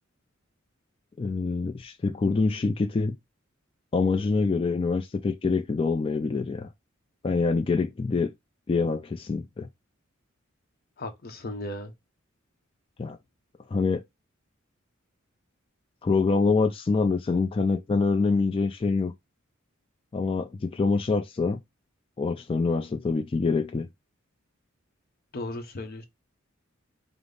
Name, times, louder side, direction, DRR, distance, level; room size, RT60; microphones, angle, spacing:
voice 1, 1.2-3.2 3.9-6.7 7.2-8.3 8.7-9.7 13.0-13.2 13.7-14.0 16.0-19.1 20.1-21.6 22.2-23.9, left 4 dB, 25° left, 0.3 m, -25 dB
voice 2, 11.0-11.9 25.3-26.1, left 2 dB, 50° left, 0.7 m, -36 dB
5.1 x 2.0 x 3.8 m
head